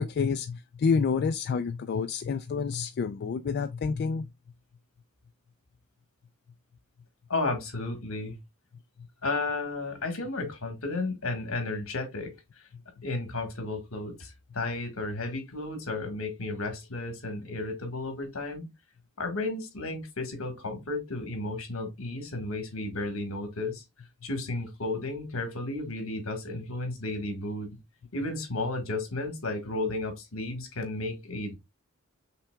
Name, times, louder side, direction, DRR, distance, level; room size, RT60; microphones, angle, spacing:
voice 1, 0.0-4.3, left 5 dB, 50° left, 0.3 m, -28 dB
voice 2, 7.3-8.3 9.2-12.7 13.0-18.7 19.2-23.8 24.2-27.7 28.1-31.6, left 2 dB, 70° left, 1.5 m, -33 dB
5.7 x 3.4 x 2.2 m
head